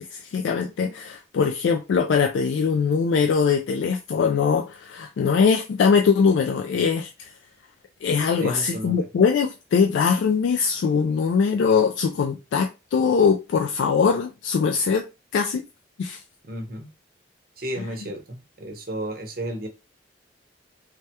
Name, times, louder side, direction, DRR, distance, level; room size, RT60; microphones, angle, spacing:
voice 1, 0.1-7.3 8.0-15.1 15.3-15.7 16.0-16.2 17.8-17.9, left 6 dB, 90° left, 0.3 m, -22 dB
voice 2, 8.4-9.1 16.4-16.9 17.6-19.7, right 1 dB, 55° right, 0.7 m, -33 dB
3.3 x 2.2 x 2.8 m
head